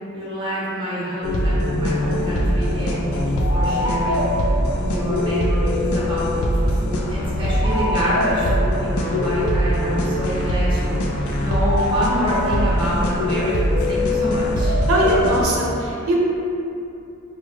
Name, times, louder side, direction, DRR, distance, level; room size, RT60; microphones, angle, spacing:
voice 1, 0.1-14.7, equal, 25° right, -8 dB, 0.7 m, -27 dB
sound 1, 1.2-15.5, equal, 85° left, 0.4 m, -21 dB
voice 2, 14.9-16.1, right 1 dB, 90° right, -4 dB, 0.5 m, -20 dB
3.2 x 2.1 x 3.4 m, 2.8 s
head